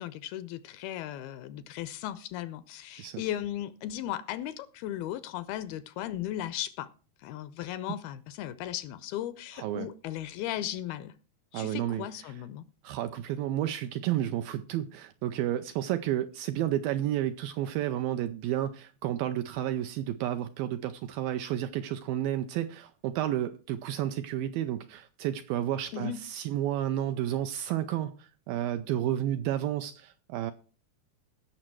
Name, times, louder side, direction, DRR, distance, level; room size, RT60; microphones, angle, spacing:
voice 1, 0.0-6.9 7.2-11.1 11.5-12.6 25.9-26.2, left 12 dB, 80° left, 2.3 m, -36 dB
voice 2, 9.6-9.9 11.5-12.1 12.8-30.5, right 12 dB, 80° right, 2.2 m, -31 dB
16.5 x 6.4 x 4.6 m
omnidirectional pair, 4.7 m